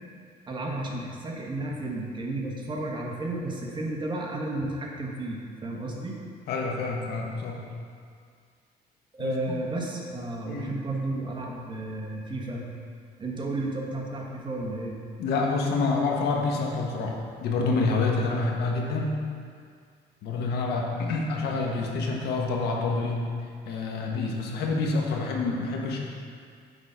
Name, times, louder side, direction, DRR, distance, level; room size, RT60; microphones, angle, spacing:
voice 1, 0.5-6.2 9.1-12.6 13.2-15.0, right 2 dB, 25° right, -2 dB, 1.4 m, -32 dB
voice 2, 6.5-7.6 9.2-9.5 10.4-10.7 15.2-17.1 17.4-19.1 20.2-23.2 23.6-26.0, left 3 dB, 75° left, 0 dB, 1.4 m, -27 dB
9.8 x 4.0 x 5.7 m, 2.2 s
cardioid pair, 110°, 17 cm